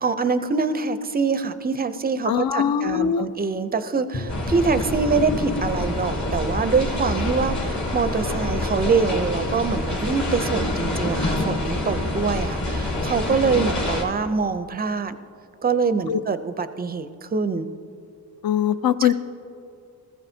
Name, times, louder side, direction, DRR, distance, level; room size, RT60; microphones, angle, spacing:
voice 1, 0.0-15.2 15.6-17.7 19.0-19.1, right 4 dB, 25° right, 11 dB, 0.4 m, -24 dB
voice 2, 2.3-3.3 13.3-13.6 16.1-16.2 18.4-19.1, left 9 dB, 65° left, 12 dB, 0.5 m, -22 dB
Bowed string instrument, 4.1-8.9, left 1 dB, 25° left, 0.8 m, -40 dB
sound 1, 4.3-14.0, left 1 dB, 45° left, 2.4 m, -26 dB
19.5 x 14.0 x 2.7 m, 2.5 s
wide cardioid pair, 140°, 39 cm